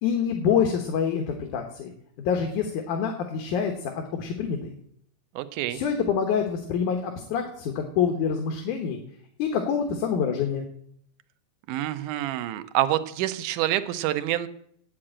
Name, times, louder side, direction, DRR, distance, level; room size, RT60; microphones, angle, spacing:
voice 1, 0.0-1.9 2.2-4.7 5.7-9.0 9.4-10.7, left 7 dB, 80° left, 4 dB, 2.6 m, -26 dB
voice 2, 5.4-5.8 11.7-14.5, right 13 dB, 85° right, 12 dB, 2.3 m, -27 dB
8.8 x 7.7 x 8.7 m, 0.67 s
omnidirectional pair, 3.6 m